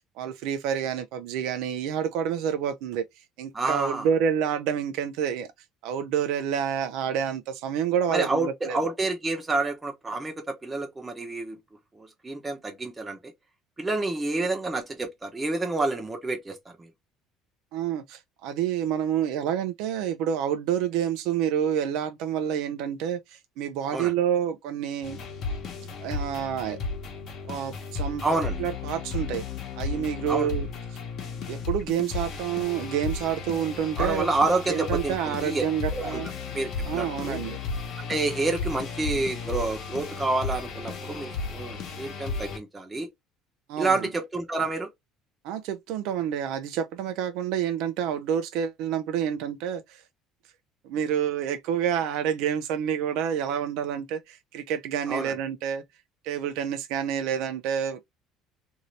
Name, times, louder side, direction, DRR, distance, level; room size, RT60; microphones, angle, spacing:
voice 1, 0.2-3.1 3.4-5.5 5.8-8.8 17.7-25.2 26.0-26.8 27.4-28.2 28.6-29.4 29.8-30.7 31.5-34.3 34.7-36.3 36.8-37.6 43.7-44.1 45.4-50.0 50.8-55.8 56.2-58.0, right 9 dB, 75° right, 0.5 m, -28 dB
voice 2, 3.5-4.1 8.1-11.6 11.9-13.3 13.8-16.9 23.9-24.1 28.2-28.6 30.3-30.5 34.0-35.6 35.9-36.2 36.5-37.4 38.0-43.1 43.8-44.9 55.1-55.4, right 3 dB, 15° right, 0.9 m, -28 dB
sound 1, 25.0-42.6, left 4 dB, 50° left, 1.0 m, -34 dB
2.7 x 2.7 x 3.1 m
cardioid pair, 150°, 0 cm